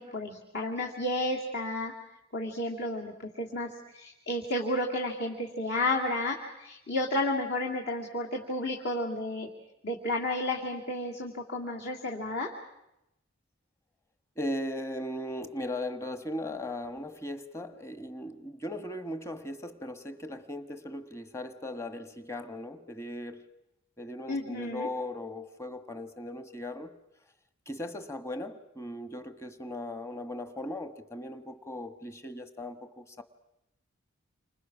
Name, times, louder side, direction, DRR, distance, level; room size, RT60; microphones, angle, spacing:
voice 1, 0.0-1.9 2.3-9.5 9.8-12.5 24.3-24.9, left 1 dB, 55° left, 2.8 m, -32 dB
voice 2, 14.4-23.4 24.0-27.0 27.7-33.2, left 1 dB, 15° left, 1.4 m, -38 dB
30.0 x 26.5 x 6.2 m
head